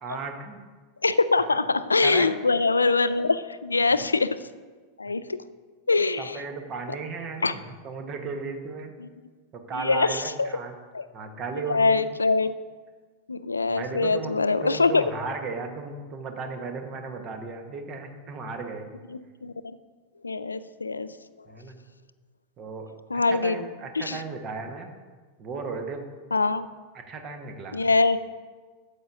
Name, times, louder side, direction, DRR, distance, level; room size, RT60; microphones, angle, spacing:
voice 1, 0.0-0.6 1.4-1.6 2.0-2.3 6.2-8.9 9.5-10.8 11.1-12.1 13.7-14.3 14.6-18.9 21.5-21.8 22.6-22.9 23.3-24.9 25.4-26.1 26.9-27.8, right 4 dB, 35° right, 5 dB, 1.1 m, -35 dB
voice 2, 1.0-4.4 5.0-5.4 5.9-6.4 7.4-7.5 9.0-9.1 9.8-10.5 10.9-11.0 11.7-12.5 13.3-15.0 19.4-19.5 20.2-21.1 23.1-23.6 24.0-24.2 26.3-26.7 27.7-28.2, left 3 dB, 80° left, 15 dB, 0.3 m, -23 dB
13.5 x 8.2 x 2.6 m, 1.4 s
figure-of-eight pair, 90°, 0 cm